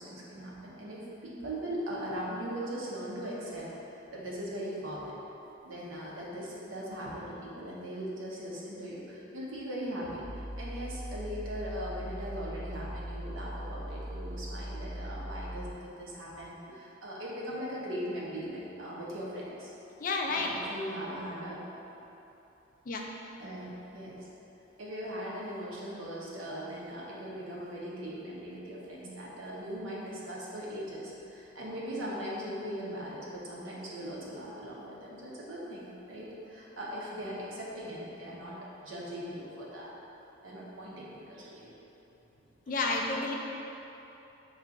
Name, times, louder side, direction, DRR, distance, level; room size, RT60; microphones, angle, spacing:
voice 1, 0.0-3.7 3.9-5.1 5.6-19.7 20.3-21.7 23.4-24.3 24.8-39.9 40.4-41.7, equal, 90° right, -5 dB, 0.9 m, -39 dB
sound 1, 10.2-15.7, equal, 25° right, 0.5 m, -40 dB
voice 2, 20.0-20.5 22.9-23.0 42.7-43.3, left 3 dB, 45° left, 0 dB, 0.4 m, -30 dB
5.4 x 2.4 x 3.7 m, 2.9 s
head